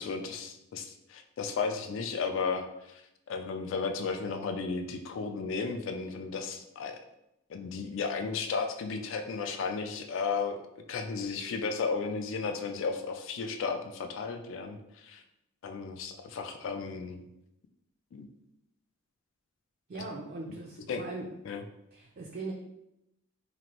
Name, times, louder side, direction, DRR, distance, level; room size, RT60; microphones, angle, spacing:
voice 1, 0.0-3.0 3.3-7.0 7.5-10.6 10.9-15.2 15.6-17.2 18.1-18.3 19.9-20.0 20.9-21.0 21.4-21.6, left 5 dB, 60° left, 6 dB, 0.3 m, -34 dB
voice 2, 19.9-21.3 21.9-22.5, right 3 dB, 45° right, -1 dB, 0.3 m, -40 dB
3.0 x 2.5 x 2.8 m, 0.84 s
head